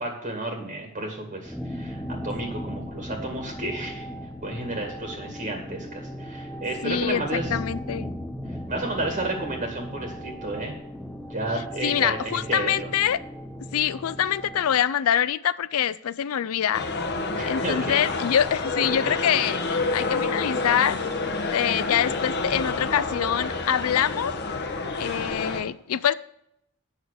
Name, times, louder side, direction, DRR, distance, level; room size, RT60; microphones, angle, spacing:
voice 1, 0.0-4.1 4.4-7.5 8.7-10.8 11.3-12.9 17.3-18.0, right 2 dB, 35° right, 2 dB, 2.0 m, -32 dB
sound 1, 1.5-14.8, equal, 5° left, 0.8 m, -37 dB
voice 2, 6.8-8.1 11.8-13.2 13.7-16.9 17.4-21.0 21.4-24.3 25.0-26.1, left 9 dB, 70° left, 17 dB, 0.4 m, -25 dB
sound 2, 16.7-25.6, left 3 dB, 50° left, 1.2 m, -28 dB
8.9 x 6.3 x 6.4 m, 0.77 s
head